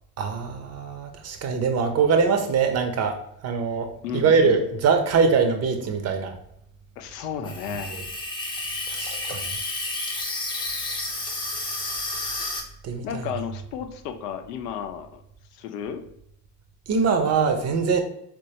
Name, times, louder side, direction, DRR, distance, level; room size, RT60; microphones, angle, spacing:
voice 1, 0.2-3.9 4.1-6.4 8.9-9.5 12.8-13.3 16.9-18.0, right 5 dB, 35° right, 6 dB, 0.6 m, -23 dB
voice 2, 4.0-4.6 7.0-8.0 13.0-15.2 15.5-16.0, left 8 dB, 75° left, 7 dB, 0.6 m, -33 dB
Water tap faucet / Sink (filling or washing), 7.4-12.6, left 2 dB, 10° left, 0.5 m, -31 dB
4.3 x 2.2 x 2.8 m, 0.76 s
figure-of-eight pair, 60°, 49 cm